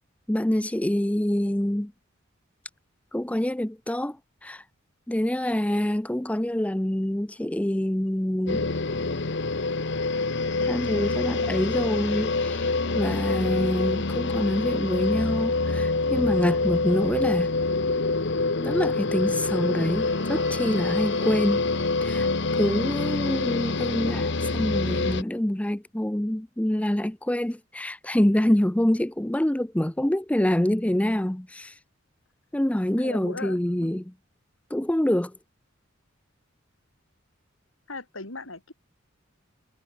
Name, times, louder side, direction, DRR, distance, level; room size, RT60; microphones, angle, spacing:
voice 1, 0.3-1.9 3.1-4.2 4.4-4.6 5.1-8.7 10.6-17.5 18.6-21.6 22.0-22.3 22.6-31.8 32.5-34.1 34.7-35.3, left 1 dB, 5° left, 0.5 m, -26 dB
sound 1, 8.5-25.2, left 3 dB, 60° left, 1.2 m, -26 dB
Wind instrument woodwind instrument, 19.2-23.3, right 4 dB, 60° right, 6.2 m, -48 dB
voice 2, 33.0-33.9 37.9-38.7, left 3 dB, 75° left, 5.2 m, -38 dB
head